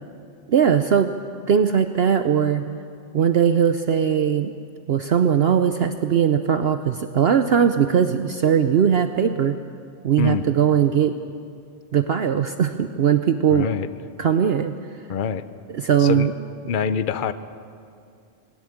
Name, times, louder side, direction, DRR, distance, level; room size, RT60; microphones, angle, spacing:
voice 1, 0.5-1.1 1.5-2.8 3.1-4.5 4.9-9.6 10.0-11.1 11.9-13.7 14.2-14.7 15.7-16.3, right 8 dB, 60° right, 9 dB, 0.9 m, -19 dB
voice 2, 13.5-13.9 15.1-15.5 16.0-16.3 16.6-17.3, left 6 dB, 45° left, 13 dB, 0.8 m, -24 dB
20.5 x 18.0 x 8.7 m, 2.3 s
omnidirectional pair, 1.3 m